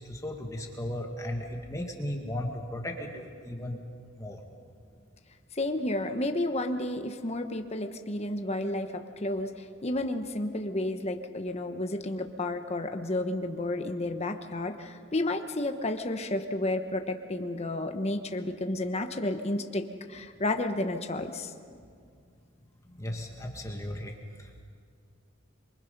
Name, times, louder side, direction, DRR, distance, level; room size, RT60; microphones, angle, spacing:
voice 1, 0.0-3.8 4.2-4.4 22.9-24.6, left 1 dB, 15° left, 1 dB, 1.9 m, -36 dB
voice 2, 5.5-21.5, left 1 dB, 30° left, 6 dB, 1.0 m, -31 dB
27.0 x 23.5 x 5.4 m, 2.2 s
head